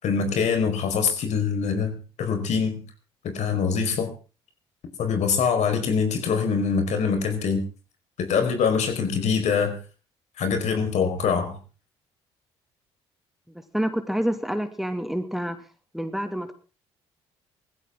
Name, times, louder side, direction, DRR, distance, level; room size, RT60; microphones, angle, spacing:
voice 1, 0.0-2.8 3.2-4.1 5.0-7.6 8.2-9.7 10.4-11.6, left 6 dB, 60° left, 6 dB, 4.9 m, -24 dB
voice 2, 13.7-15.6 15.9-16.5, equal, ahead, 8 dB, 2.4 m, -27 dB
20.0 x 15.0 x 3.8 m, 0.35 s
hypercardioid pair, 55°, 13 cm